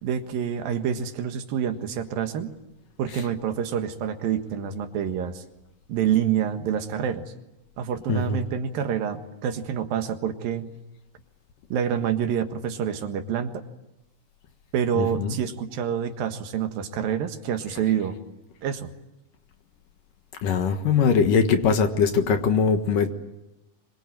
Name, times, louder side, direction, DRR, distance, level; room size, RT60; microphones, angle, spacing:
voice 1, 0.0-2.5 3.0-5.4 5.9-7.2 7.8-10.7 11.7-13.5 14.7-18.2 18.6-18.9, right 8 dB, 70° right, 7 dB, 3.2 m, -27 dB
voice 2, 15.0-15.3 20.4-23.1, left 5 dB, 65° left, 7 dB, 2.9 m, -21 dB
24.5 x 23.0 x 9.1 m, 0.94 s
omnidirectional pair, 4.4 m